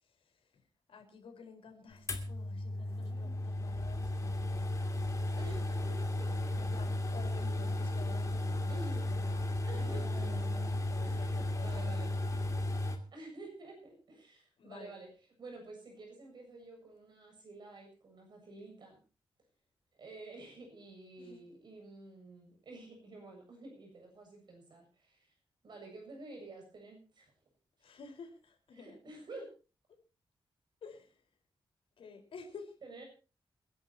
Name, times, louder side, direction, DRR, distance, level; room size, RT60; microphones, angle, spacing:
voice 1, 0.9-4.8 6.6-8.8 9.1-9.5 9.8-10.1 10.9-11.9 14.6-15.0 21.2-21.4 27.8-29.0 30.8-31.1 32.0-32.7, left 5 dB, 80° left, 5 dB, 4.6 m, -51 dB
sound 1, 2.1-13.0, left 1 dB, 35° left, 2.7 m, -34 dB
sound 2, 2.7-3.4 4.1-4.5 5.1-5.7 6.9-7.0 8.2-8.8 9.1-9.2 9.7-10.7, right 3 dB, 35° right, 3.4 m, -54 dB
voice 2, 5.3-7.0 8.7-9.1 9.7-10.3 11.0-12.1 13.1-15.1 15.4-19.0 20.0-25.3 25.6-27.3 28.7-29.5 32.8-33.0, right 2 dB, 55° right, 2 dB, 7.7 m, -50 dB
29.0 x 11.0 x 2.9 m, 0.34 s
wide cardioid pair, 165°, 9 cm